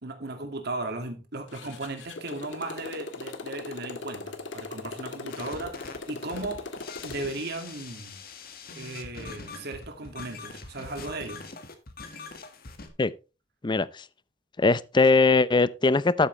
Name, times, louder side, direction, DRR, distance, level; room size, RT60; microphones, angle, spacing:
voice 1, 0.0-6.6 7.0-8.2 8.7-11.4, right 2 dB, 60° right, 2.2 m, -36 dB
Motorcycle, 1.5-7.4, left 3 dB, 75° left, 1.7 m, -39 dB
sound 1, 5.3-12.9, left 4 dB, 55° left, 1.8 m, -43 dB
voice 2, 13.6-14.1 14.6-16.3, left 3 dB, 25° left, 0.5 m, -21 dB
12.5 x 8.6 x 3.2 m
head